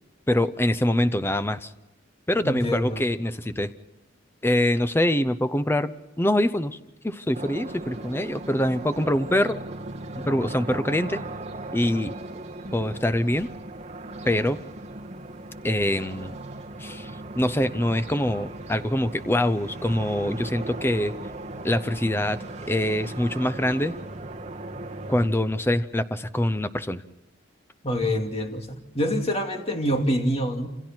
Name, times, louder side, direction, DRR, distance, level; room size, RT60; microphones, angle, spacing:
voice 1, 0.3-1.7 2.3-3.7 4.4-6.8 7.0-9.6 10.3-11.2 11.7-12.2 12.7-13.5 14.2-14.6 15.6-16.4 16.8-21.1 21.6-24.0 25.1-27.0, left 1 dB, 10° left, 12 dB, 0.7 m, -24 dB
voice 2, 2.4-3.1 27.8-30.7, equal, 30° left, 3 dB, 2.4 m, -26 dB
sound 1, 7.3-25.3, right 2 dB, 35° right, 2.1 m, -38 dB
28.0 x 27.5 x 4.5 m, 1.0 s
head